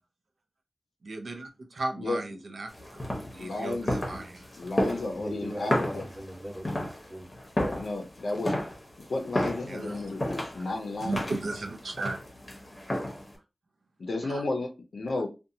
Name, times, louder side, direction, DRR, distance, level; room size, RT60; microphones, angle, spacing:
voice 1, 1.0-1.5 1.8-4.5 9.7-10.1 11.0-12.2 14.2-14.4, right 2 dB, 90° right, 0.4 m, -36 dB
voice 2, 1.9-2.4 3.4-4.0 4.6-6.1 7.7-8.5 9.1-11.2 14.0-15.3, left 2 dB, 90° left, 0.5 m, -33 dB
sound 1, 2.7-13.4, left 1 dB, 30° left, 0.8 m, -33 dB
voice 3, 5.1-7.3, equal, 30° right, 1.0 m, -39 dB
2.7 x 2.1 x 2.6 m
wide cardioid pair, 85°, 0 cm